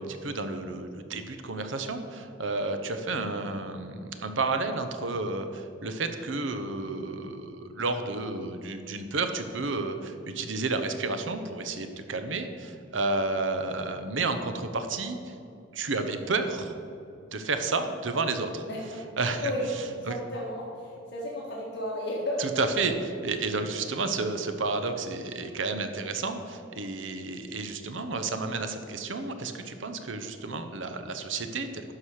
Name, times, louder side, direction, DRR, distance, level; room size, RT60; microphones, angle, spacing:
voice 1, 0.0-15.3 15.7-16.7 17.3-18.7 19.2-19.5 20.1-20.2 22.4-31.9, right 3 dB, 85° right, 8 dB, 0.9 m, -31 dB
voice 2, 18.7-19.0 19.4-22.4, left 1 dB, 65° left, -4 dB, 1.8 m, -33 dB
11.5 x 4.9 x 6.4 m, 2.7 s
head